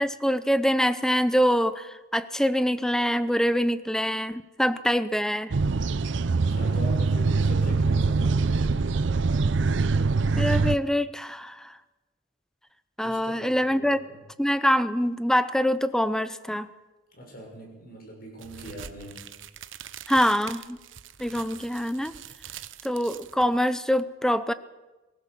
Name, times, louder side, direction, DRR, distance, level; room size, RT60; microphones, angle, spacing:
voice 1, 0.0-5.5 10.4-11.7 13.0-14.0 14.4-16.7 20.1-20.8 21.2-22.1 22.8-24.5, equal, 5° left, 14 dB, 0.7 m, -24 dB
sound 1, 5.5-10.8, right 4 dB, 70° right, 0.6 m, -23 dB
voice 2, 6.3-9.1 13.0-14.2 17.1-19.3, equal, 50° left, 1 dB, 6.9 m, -42 dB
sound 2, 18.4-23.9, right 9 dB, 85° right, 0.9 m, -44 dB
23.5 x 16.0 x 7.3 m, 1.1 s
head